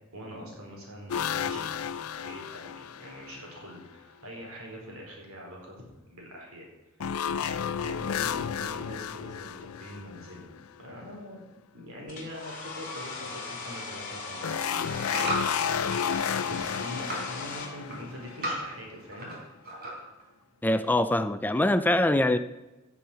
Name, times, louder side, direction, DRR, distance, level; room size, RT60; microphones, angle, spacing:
voice 1, 0.1-1.9 2.1-6.7 7.3-10.5 10.8-11.4 11.7-19.3, equal, 80° right, 4.5 m, -43 dB
sound 1, 1.1-3.6 7.0-10.8 14.4-18.8, left 8 dB, 85° left, 0.5 m, -32 dB
Domestic sounds home sounds, 12.1-17.7, left 3 dB, 40° left, 2.7 m, -38 dB
sound 2, 14.3-16.2 16.5-17.3 17.6-19.4 19.6-20.2 20.7-20.8, right 1 dB, 45° right, 4.2 m, -35 dB
voice 2, 20.6-22.4, left 1 dB, 10° left, 0.4 m, -23 dB
15.5 x 7.2 x 5.7 m
head